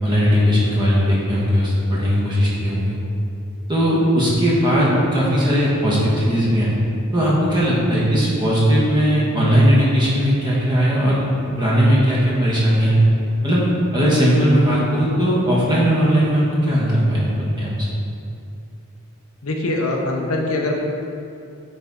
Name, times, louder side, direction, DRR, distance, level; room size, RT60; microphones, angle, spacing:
voice 1, 0.0-2.9 3.7-6.7 7.1-11.3 11.6-13.2 13.4-17.3 17.6-17.7, equal, 20° right, -7 dB, 1.4 m, -18 dB
voice 2, 19.4-20.8, left 2 dB, 80° left, 1 dB, 0.8 m, -22 dB
8.8 x 4.2 x 3.7 m, 2.6 s
head